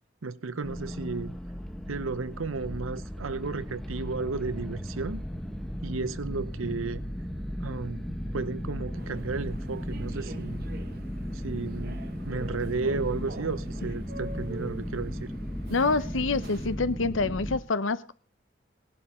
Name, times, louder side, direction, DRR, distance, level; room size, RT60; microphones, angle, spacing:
voice 1, 0.2-1.4 1.9-5.2 5.8-7.0 7.6-8.0 8.3-10.6 11.3-12.0 12.3-15.3, right 4 dB, 85° right, 0.8 m, -33 dB
sound 1, 0.6-17.6, equal, ahead, 1.0 m, -36 dB
Human voice / Subway metro underground, 8.9-16.9, right 1 dB, 50° right, 1.1 m, -46 dB
voice 2, 15.7-18.1, left 3 dB, 75° left, 0.8 m, -26 dB
18.0 x 11.5 x 4.3 m
head